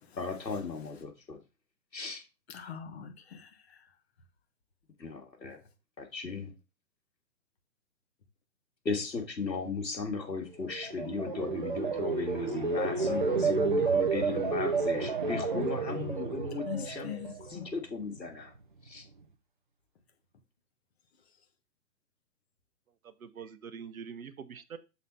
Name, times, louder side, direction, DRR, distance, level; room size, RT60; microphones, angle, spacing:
voice 1, 0.2-1.4 1.9-2.2 5.0-5.6 6.0-6.5 8.8-17.1 17.5-18.5 18.8-19.0, left 4 dB, 80° left, 3 dB, 2.6 m, -36 dB
voice 2, 2.5-3.8 16.6-17.7, left 8 dB, 40° left, 5 dB, 1.5 m, -42 dB
sound 1, 10.6-17.8 18.2-18.6, right 4 dB, 30° right, 0.5 m, -31 dB
voice 3, 23.0-24.8, right 7 dB, 55° right, 10 dB, 1.0 m, -44 dB
6.8 x 4.1 x 4.1 m, 0.28 s
figure-of-eight pair, 145°, 50 cm